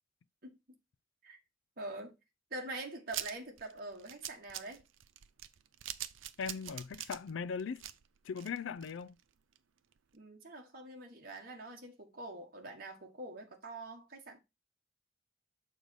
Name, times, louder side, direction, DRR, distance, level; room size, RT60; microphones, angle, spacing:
voice 1, 0.4-0.8 1.2-1.4 1.8-2.2 2.5-4.8 10.1-14.4, right 2 dB, 45° right, 1.4 m, -45 dB
sound 1, 3.1-9.2 9.5-9.6 9.9-10.0, right 12 dB, 75° right, 0.5 m, -44 dB
voice 2, 6.4-7.8 8.2-9.2, left 6 dB, 70° left, 0.4 m, -39 dB
6.6 x 3.9 x 4.8 m
head